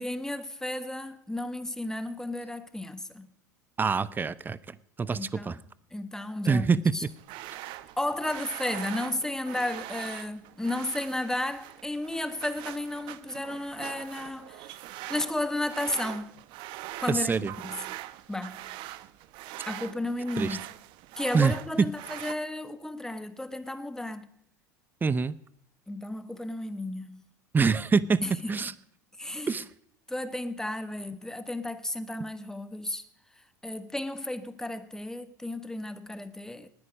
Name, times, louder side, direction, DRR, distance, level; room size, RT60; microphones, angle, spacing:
voice 1, 0.0-3.3 5.1-5.6 5.9-7.0 8.0-14.8 15.1-16.4 17.0-17.3 17.6-17.8 18.3-18.7 19.7-20.6 21.2-24.3 25.9-27.2 28.2-28.5 29.2-29.5 30.1-33.0 33.4-36.7, left 1 dB, 5° left, 1.3 m, -33 dB
voice 2, 3.8-5.6 6.5-6.9 17.1-17.5 20.4-20.6 21.3-21.9 25.0-25.3 27.5-28.7 29.5-29.7, right 5 dB, 20° right, 0.7 m, -25 dB
sound 1, 7.0-22.3, right 15 dB, 60° right, 0.9 m, -42 dB
19.5 x 9.7 x 5.2 m
hypercardioid pair, 80°, 10 cm